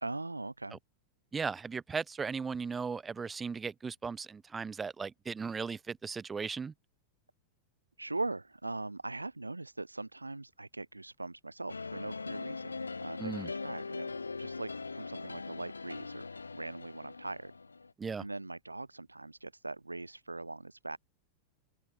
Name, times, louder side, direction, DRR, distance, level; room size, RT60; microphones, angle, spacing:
voice 1, 0.0-0.8 8.0-14.1 14.4-16.3 16.5-17.5 18.2-21.0, right 2 dB, 85° right, 1.2 m, -41 dB
voice 2, 1.3-6.7 13.2-13.5 18.0-18.2, right 5 dB, 15° right, 0.5 m, -37 dB
sound 1, 11.7-17.9, left 4 dB, 80° left, 3.2 m, -41 dB
open air
figure-of-eight pair, 90°, 0 cm